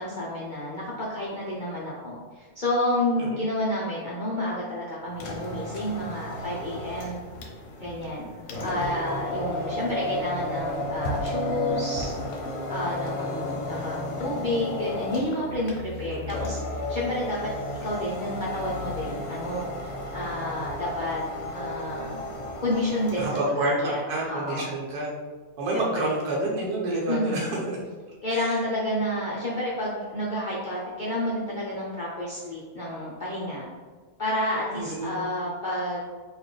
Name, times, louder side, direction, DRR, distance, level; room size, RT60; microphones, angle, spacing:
voice 1, 0.0-7.2 7.8-8.3 8.6-12.1 12.7-17.5 17.8-19.7 20.1-21.2 21.5-22.2 22.6-23.4 23.8-24.0 24.3-24.7 25.7-26.1 27.1-27.5 28.2-33.6 34.2-36.0, left 1 dB, 50° left, -6 dB, 0.6 m, -30 dB
voice 2, 3.2-3.5 16.1-16.4 23.2-25.2 25.6-27.8 28.3-28.6 34.7-35.2, right 1 dB, 85° right, -4 dB, 1.3 m, -28 dB
sound 1, 5.1-23.3, left 1 dB, 65° left, 1.0 m, -33 dB
4.0 x 2.9 x 3.2 m, 1.5 s
omnidirectional pair, 1.6 m